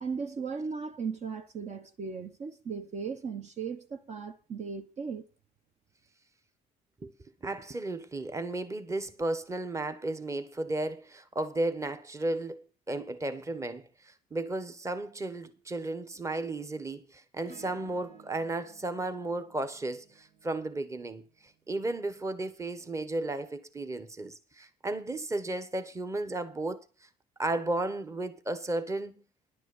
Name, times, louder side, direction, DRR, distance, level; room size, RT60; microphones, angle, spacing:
voice 1, 0.0-5.2, right 5 dB, 45° right, 1.2 m, -37 dB
voice 2, 7.4-21.2 21.7-26.8 27.4-29.1, right 2 dB, 15° right, 1.3 m, -34 dB
Acoustic guitar / Strum, 17.4-22.0 23.9-24.0, right 5 dB, 70° right, 2.0 m, -56 dB
11.0 x 6.2 x 8.0 m
cardioid pair, 110°, 17 cm